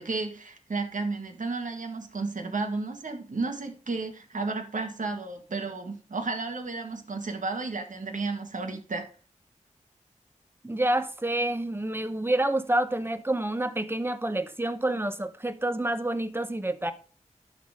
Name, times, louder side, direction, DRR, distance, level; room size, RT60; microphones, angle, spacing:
voice 1, 0.0-9.1, right 3 dB, 80° right, 1.7 m, -32 dB
voice 2, 10.6-16.9, right 1 dB, 15° right, 1.0 m, -28 dB
12.0 x 4.1 x 5.1 m
wide cardioid pair, 55°, 13 cm